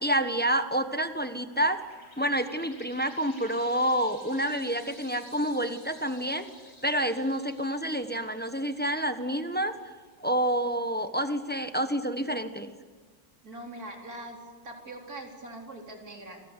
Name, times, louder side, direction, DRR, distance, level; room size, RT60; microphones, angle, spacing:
voice 1, 0.0-1.8 2.2-6.4 6.8-9.7 10.2-12.7, right 1 dB, 5° left, 8 dB, 0.9 m, -28 dB
sound 1, 1.1-10.2, left 1 dB, 55° left, 6.0 m, -53 dB
voice 2, 13.4-14.4 14.6-16.4, right 1 dB, 50° right, 1 dB, 4.5 m, -42 dB
29.0 x 22.5 x 8.3 m, 1.5 s
omnidirectional pair, 2.0 m